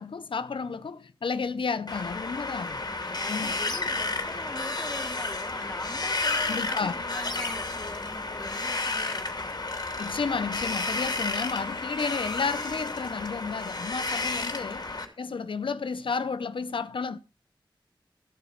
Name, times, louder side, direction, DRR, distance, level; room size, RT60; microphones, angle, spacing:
voice 1, 0.0-2.8 3.3-3.5 6.4-7.0 10.0-17.2, left 5 dB, 90° left, 0.6 m, -32 dB
Wind, 1.9-15.1, left 3 dB, 55° left, 2.9 m, -32 dB
voice 2, 3.0-9.6 14.5-14.9, left 1 dB, 10° left, 3.8 m, -43 dB
14.5 x 5.1 x 8.0 m
wide cardioid pair, 70°, 8 cm